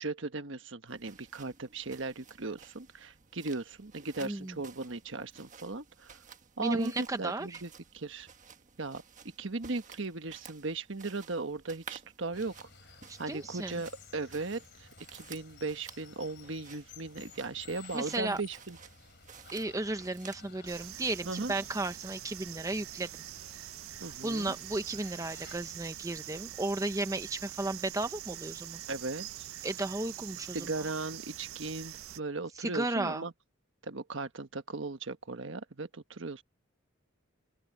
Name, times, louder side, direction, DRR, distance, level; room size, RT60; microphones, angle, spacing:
voice 1, 0.0-6.2 6.6-8.3 8.8-9.0 9.4-12.7 13.2-18.8 21.2-21.5 24.0-24.5 28.9-29.5 30.5-33.3 33.8-36.4, right 3 dB, 65° right, 1.3 m, -37 dB
sound 1, 0.9-20.6, right 6 dB, 40° right, 1.4 m, -54 dB
voice 2, 4.2-4.6 6.6-7.6 13.1-13.8 17.9-18.4 19.5-23.1 24.2-28.8 29.6-30.9 32.6-33.2, right 2 dB, 15° right, 0.6 m, -34 dB
Water, 12.3-25.9, left 5 dB, 55° left, 3.1 m, -55 dB
sound 2, 20.7-32.2, right 13 dB, 85° right, 0.5 m, -44 dB
open air
head